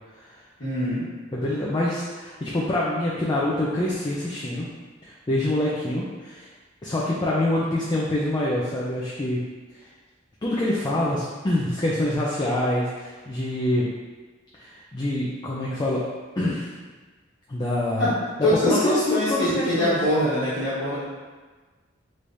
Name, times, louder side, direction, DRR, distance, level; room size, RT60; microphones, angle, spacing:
voice 1, 0.6-1.1 18.0-21.0, equal, 55° left, -15 dB, 1.2 m, -23 dB
voice 2, 1.3-4.7 5.0-6.5 6.8-9.4 10.4-13.9 14.6-16.0 16.4-16.7 17.5-18.1 18.6-20.0, left 1 dB, 20° left, -6 dB, 0.4 m, -25 dB
3.3 x 3.2 x 2.6 m, 1.3 s
head